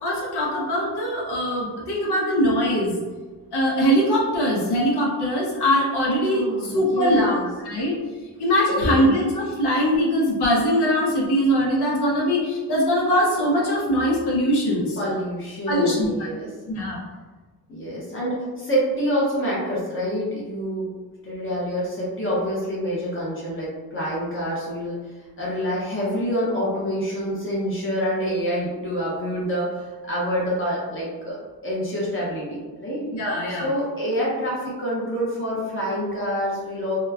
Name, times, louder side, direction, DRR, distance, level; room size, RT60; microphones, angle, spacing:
voice 1, 0.0-3.0 3.5-7.9 8.4-15.0 15.7-16.1 16.7-17.0 33.1-33.7, equal, 90° left, -4 dB, 0.8 m, -22 dB
voice 2, 6.0-7.5 8.7-9.1 15.0-16.5 17.7-20.9 21.2-25.0 25.4-31.4 31.6-33.1 33.5-37.0, equal, 30° left, -7 dB, 0.7 m, -27 dB
2.9 x 2.1 x 2.3 m, 1.3 s
wide cardioid pair, 180°, 39 cm